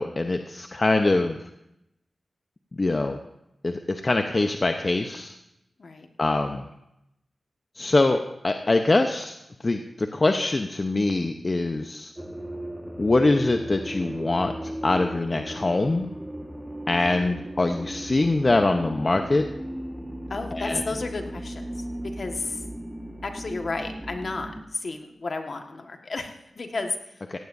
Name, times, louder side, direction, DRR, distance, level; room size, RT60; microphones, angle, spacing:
voice 1, 0.0-1.5 2.7-3.2 3.6-5.3 6.2-6.6 7.8-9.4 9.6-12.1 13.0-16.1 16.9-19.5 20.5-20.8 27.3-27.4, left 2 dB, 45° left, 6 dB, 0.9 m, -23 dB
sound 1, 12.2-24.6, right 1 dB, 10° right, 1.6 m, -36 dB
voice 2, 20.3-21.7 22.0-22.6 23.2-27.4, left 3 dB, 60° left, 4 dB, 1.6 m, -32 dB
17.0 x 15.5 x 2.7 m, 0.83 s
cardioid pair, 40°, 0 cm